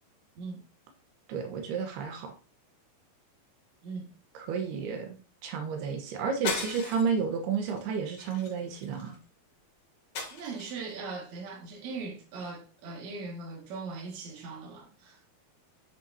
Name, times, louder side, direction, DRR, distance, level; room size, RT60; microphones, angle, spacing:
voice 1, 1.3-2.3 4.5-9.2, right 6 dB, 90° right, 3.2 m, -31 dB
sound 1, 6.4-7.2 7.6-7.8 8.2-9.1 10.1-10.9, left 4 dB, 60° left, 4.0 m, -37 dB
voice 2, 10.3-15.2, right 4 dB, 55° right, 3.0 m, -40 dB
10.5 x 6.5 x 2.8 m
omnidirectional pair, 4.4 m